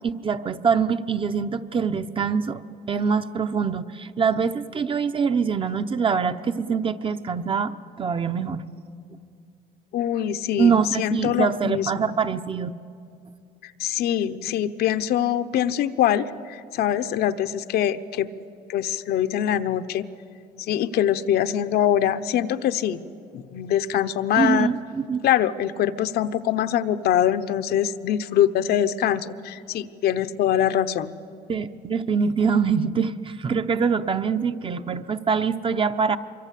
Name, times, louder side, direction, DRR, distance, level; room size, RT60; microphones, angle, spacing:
voice 1, 0.0-2.6 2.9-8.6 10.6-12.7 24.4-25.2 31.5-36.2, right 6 dB, 30° right, 10 dB, 0.9 m, -24 dB
voice 2, 9.9-12.1 13.6-18.3 18.7-20.1 20.6-23.0 23.3-24.7 25.2-31.1, left 10 dB, 70° left, 10 dB, 0.9 m, -23 dB
25.0 x 23.5 x 8.4 m, 2.5 s
cardioid pair, 110°, 17 cm